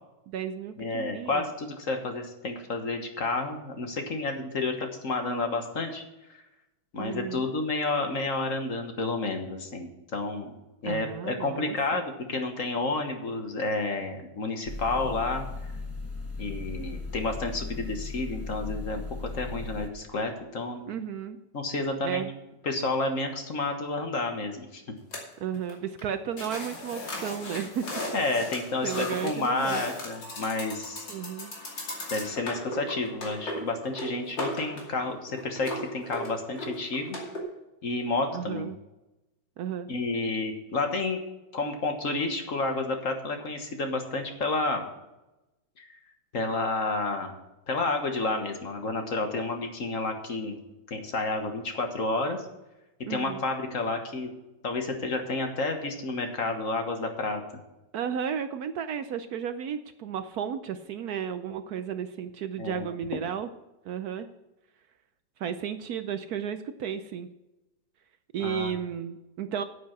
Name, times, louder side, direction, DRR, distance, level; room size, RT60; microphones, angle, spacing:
voice 1, 0.3-1.4 6.9-7.4 10.9-12.0 20.9-21.4 22.0-22.3 25.4-27.9 28.8-29.8 31.1-31.5 38.3-38.8 39.6-39.9 53.1-53.4 57.9-63.5 63.8-64.3 65.4-67.3 68.3-69.6, right 8 dB, 70° right, 10 dB, 1.0 m, -33 dB
voice 2, 0.8-6.0 6.9-10.5 10.8-15.4 16.4-20.9 21.5-22.2 22.6-24.8 28.1-31.1 32.1-37.2 37.8-38.7 39.9-41.2 41.5-44.9 45.8-45.9 46.3-47.3 47.7-50.6 50.9-52.4 53.1-54.3 54.6-57.4 62.6-62.9 68.4-68.7, left 3 dB, 50° left, 5 dB, 1.6 m, -30 dB
sound 1, 14.7-19.9, left 3 dB, 10° left, 0.9 m, -37 dB
sound 2, 25.1-25.7 26.0-26.1 26.4-37.4, left 1 dB, 80° left, 3.3 m, -37 dB
9.5 x 8.6 x 5.9 m, 0.97 s
omnidirectional pair, 1.9 m